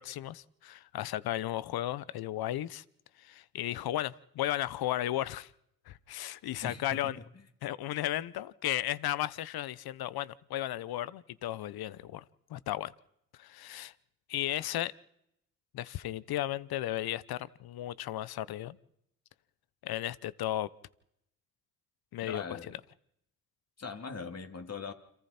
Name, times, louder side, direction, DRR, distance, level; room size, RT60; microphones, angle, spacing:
voice 1, 0.0-2.8 3.2-5.5 5.9-7.2 7.6-12.2 12.5-12.9 13.3-13.9 14.3-14.9 15.7-18.8 19.8-20.7 22.1-22.6, left 13 dB, 65° left, 19 dB, 1.0 m, -35 dB
voice 2, 6.6-7.1 22.2-22.7 23.8-24.9, left 5 dB, 40° left, 6 dB, 3.1 m, -40 dB
29.0 x 27.5 x 4.4 m, 0.78 s
hypercardioid pair, 50°, 39 cm